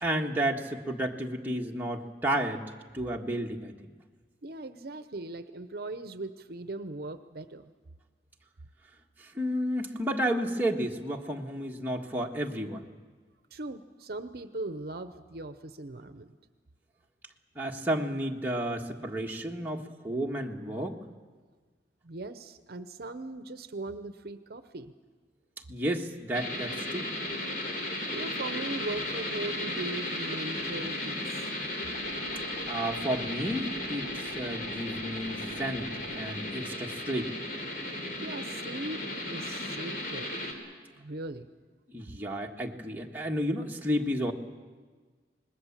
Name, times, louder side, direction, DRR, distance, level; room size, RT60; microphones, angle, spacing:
voice 1, 0.0-2.6 2.9-3.7 9.3-12.8 17.5-21.0 25.7-27.1 32.7-37.3 41.9-44.3, right 1 dB, 10° right, -1 dB, 1.5 m, -32 dB
voice 2, 4.4-7.7 13.5-16.3 22.0-24.9 28.1-31.4 38.2-40.6 41.0-41.5, right 2 dB, 60° right, 10 dB, 0.8 m, -39 dB
sound 1, 26.3-40.5, left 1 dB, 55° left, 3.7 m, -35 dB
sound 2, 31.9-36.4, left 1 dB, 85° left, 2.3 m, -48 dB
26.0 x 20.5 x 7.3 m, 1.4 s
head